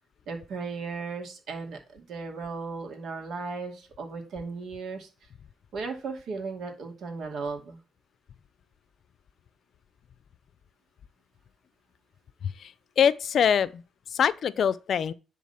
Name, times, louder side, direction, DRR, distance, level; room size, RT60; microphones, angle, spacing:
voice 1, 0.3-5.1 5.7-7.8, right 4 dB, 70° right, 2.4 m, -36 dB
voice 2, 12.4-13.8 14.1-15.1, left 8 dB, 60° left, 0.5 m, -24 dB
10.5 x 3.9 x 5.7 m
cardioid pair, 90°, 0 cm